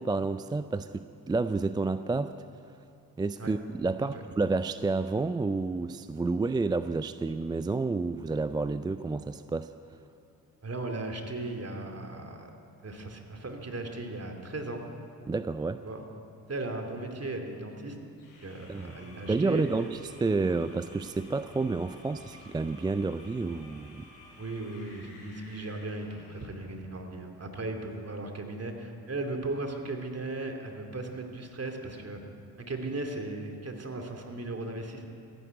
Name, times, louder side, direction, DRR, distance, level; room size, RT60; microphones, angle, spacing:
voice 1, 0.0-2.4 3.2-9.7 15.3-15.8 18.7-18.9 19.3-24.1, right 3 dB, 10° right, 12 dB, 0.3 m, -30 dB
voice 2, 10.6-12.5 12.8-14.9 15.8-16.0 16.5-18.0 18.4-19.6 24.4-32.2 32.6-35.1, right 2 dB, 30° right, 4 dB, 2.7 m, -37 dB
sound 1, 18.2-26.7, left 2 dB, 70° left, 4.6 m, -53 dB
15.0 x 10.0 x 9.5 m, 2.5 s
hypercardioid pair, 40°, 47 cm